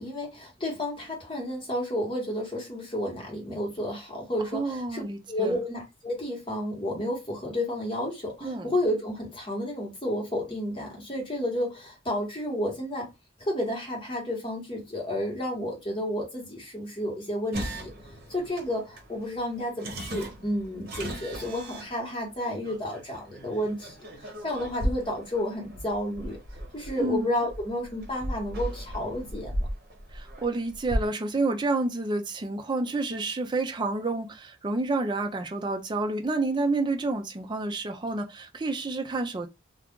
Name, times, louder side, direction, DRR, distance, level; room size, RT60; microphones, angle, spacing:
voice 1, 0.0-13.1 13.4-17.9 18.3-26.4 26.7-29.7, left 1 dB, 25° left, 1.2 m, -31 dB
voice 2, 4.5-5.6 8.4-8.7 27.0-27.3 30.1-39.5, right 2 dB, 25° right, 0.4 m, -29 dB
sound 1, 17.5-31.1, equal, 50° right, 1.0 m, -37 dB
2.4 x 2.3 x 3.6 m
head